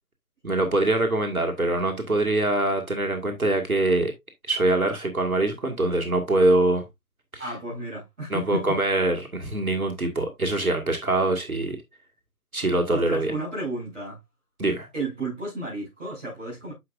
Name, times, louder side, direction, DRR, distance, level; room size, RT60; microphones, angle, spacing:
voice 1, 0.4-4.1 4.5-6.8 8.3-11.8 12.5-13.3 14.6-14.9, right 2 dB, 70° right, 1.9 m, -23 dB
voice 2, 7.4-8.8 12.9-14.2 14.9-16.7, right 1 dB, 5° right, 4.6 m, -32 dB
9.4 x 6.3 x 2.4 m
figure-of-eight pair, 175°, 45 cm